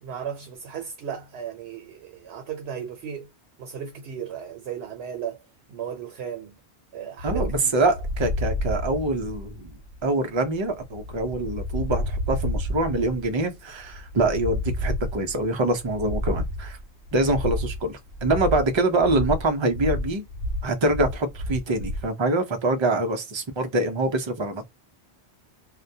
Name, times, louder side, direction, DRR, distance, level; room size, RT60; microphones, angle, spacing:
voice 1, 0.0-3.3 3.6-5.4 5.7-6.6 6.9-7.7, right 8 dB, 75° right, 0.8 m, -35 dB
sound 1, 7.2-22.1, left 1 dB, 75° left, 0.8 m, -30 dB
voice 2, 7.2-9.7 10.0-16.8 17.1-20.2 20.6-24.6, right 2 dB, 50° right, 0.3 m, -25 dB
2.2 x 2.1 x 2.6 m
omnidirectional pair, 1.1 m